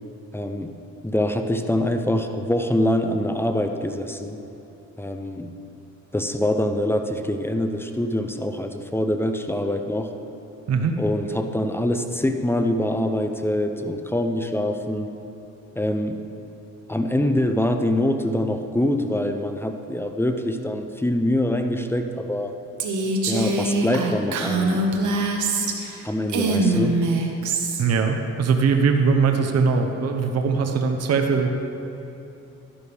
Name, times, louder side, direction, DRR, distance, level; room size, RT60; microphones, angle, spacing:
voice 1, 0.3-0.7 1.0-4.4 5.0-5.5 6.1-10.1 11.0-15.1 15.8-16.2 16.9-22.5 23.3-24.9 26.0-27.0, left 1 dB, 10° left, 6 dB, 0.7 m, -24 dB
voice 2, 10.7-11.0 27.8-31.6, right 5 dB, 55° right, 4 dB, 0.9 m, -21 dB
Female speech woman speaking, 22.8-26.0 26.3-27.8, right 2 dB, 75° right, 1.3 m, -23 dB
12.5 x 11.0 x 3.5 m, 3.0 s
cardioid pair, 90°, 30 cm